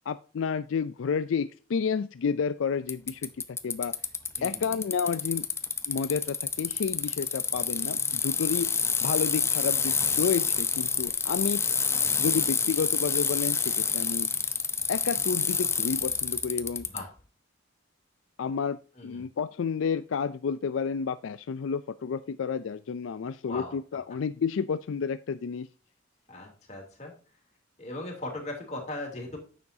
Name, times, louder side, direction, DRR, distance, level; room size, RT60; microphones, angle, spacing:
voice 1, 0.1-3.9 4.4-5.5 5.9-8.7 9.0-11.6 12.2-14.3 14.9-16.8 18.4-25.7, left 6 dB, 80° left, 13 dB, 0.4 m, -30 dB
Bicycle, 2.9-17.0, left 5 dB, 15° left, 0.6 m, -28 dB
voice 2, 4.4-4.8 12.0-12.4 16.8-17.1 18.9-19.2 23.5-23.7 26.3-27.1 27.8-29.4, left 2 dB, 35° left, 0 dB, 3.0 m, -39 dB
9.7 x 7.0 x 2.7 m, 0.37 s
head